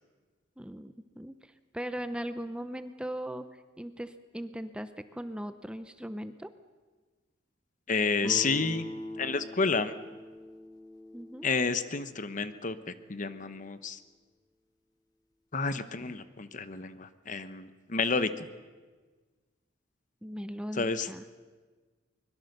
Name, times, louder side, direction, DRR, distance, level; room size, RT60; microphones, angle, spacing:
voice 1, 0.6-3.5 3.8-6.5 11.1-11.5 20.2-21.2, equal, 5° right, 11 dB, 0.7 m, -39 dB
voice 2, 7.9-8.8 9.2-9.9 11.4-14.0 15.5-18.5 20.7-21.1, left 4 dB, 40° left, 12 dB, 1.0 m, -30 dB
Guitar, 8.2-13.0, left 1 dB, 20° left, 1.7 m, -42 dB
24.0 x 21.5 x 6.7 m, 1.4 s
head